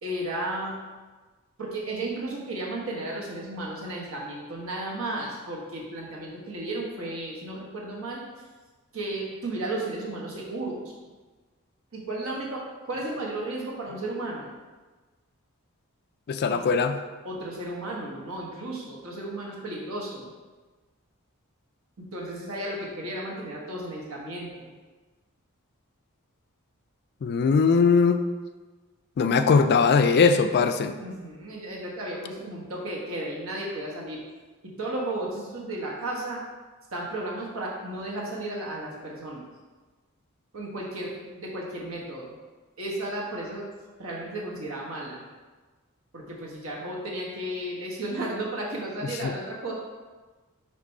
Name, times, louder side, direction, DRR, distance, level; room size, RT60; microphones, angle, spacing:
voice 1, 0.0-0.8 1.6-8.2 8.9-10.9 11.9-14.5 16.5-16.6 17.2-20.3 22.0-24.7 31.0-34.2 34.6-36.4 36.9-39.4 40.5-42.4 42.8-43.7 44.0-45.3 46.1-49.7, right 1 dB, 65° right, -3 dB, 1.3 m, -34 dB
voice 2, 16.3-16.9 27.2-28.2 29.2-30.9 49.2-49.3, left 5 dB, 50° left, 8 dB, 0.3 m, -20 dB
5.1 x 3.4 x 5.3 m, 1.3 s
head